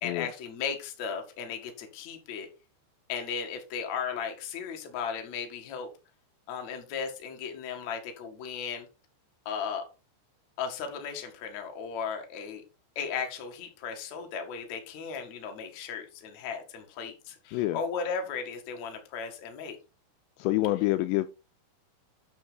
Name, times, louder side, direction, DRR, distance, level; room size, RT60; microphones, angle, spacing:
voice 1, 0.0-2.5 3.1-5.9 6.5-8.9 9.5-9.8 10.6-12.6 13.0-19.8, left 6 dB, 50° left, 2.4 m, -36 dB
voice 2, 20.4-21.3, left 17 dB, 85° left, 2.5 m, -27 dB
9.6 x 6.0 x 3.9 m
omnidirectional pair, 5.4 m